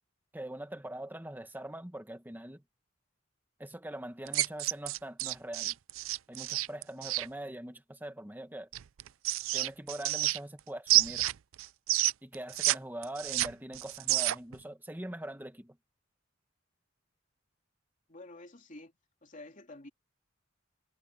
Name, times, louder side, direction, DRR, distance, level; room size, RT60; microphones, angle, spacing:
voice 1, 0.3-2.6 3.6-5.8 6.3-8.7 9.5-11.3 12.2-15.8, right 1 dB, 10° right, 1.5 m, -42 dB
sound 1, 4.3-7.3 8.7-10.6 10.9-12.8 13.0-14.5, right 16 dB, 85° right, 0.4 m, -29 dB
voice 2, 18.1-18.9 19.2-19.9, left 2 dB, 40° left, 2.7 m, -49 dB
head